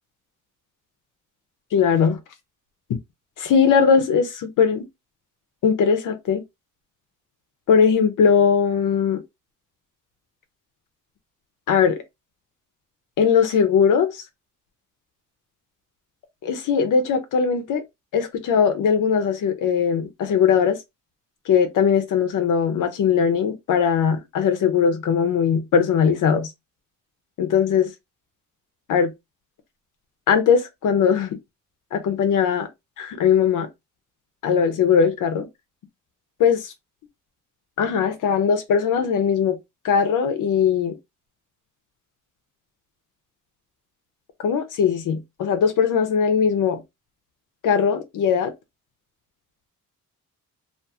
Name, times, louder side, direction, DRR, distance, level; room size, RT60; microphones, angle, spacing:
voice 1, 1.7-2.2 3.4-4.8 5.6-6.4 7.7-9.2 11.7-12.0 13.2-14.2 16.4-17.8 18.1-20.8 21.5-26.5 27.4-27.9 28.9-29.1 30.3-31.4 31.9-32.7 33.0-33.7 34.4-35.5 36.4-36.7 37.8-39.6 39.8-41.0 44.4-46.8 47.6-48.5, left 7 dB, 70° left, 0.6 m, -20 dB
2.5 x 2.3 x 2.7 m
cardioid pair, 125°, 32 cm